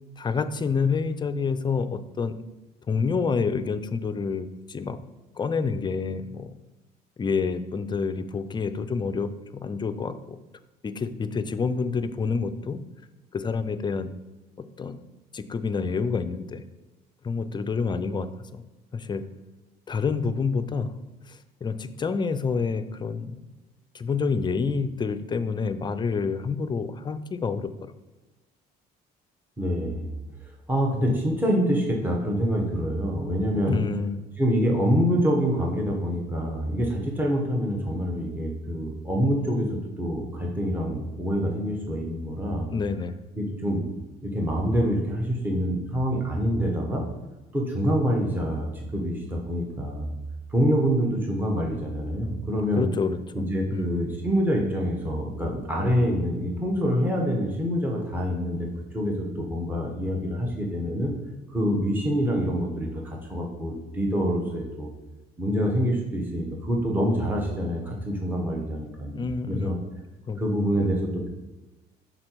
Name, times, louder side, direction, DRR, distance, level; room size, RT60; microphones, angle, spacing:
voice 1, 0.2-2.4 2.9-5.0 5.4-6.6 7.2-9.3 9.6-10.4 10.8-12.8 13.3-14.1 14.8-15.0 15.3-16.6 17.2-18.6 18.9-19.2 19.9-21.0 21.3-23.4 23.9-27.9 33.7-34.2 42.7-43.2 52.8-53.4 53.7-53.9 69.1-69.8 70.3-70.4 70.8-70.9, left 5 dB, 25° left, 10 dB, 0.5 m, -28 dB
voice 2, 29.6-30.1 30.7-33.8 34.4-42.7 43.4-43.8 44.2-47.0 47.5-50.1 50.5-52.9 53.3-58.7 58.9-61.1 61.5-64.9 65.4-69.8 70.4-71.3, equal, 10° right, -1 dB, 1.1 m, -26 dB
6.5 x 3.9 x 4.5 m, 1.1 s
cardioid pair, 110°, 17 cm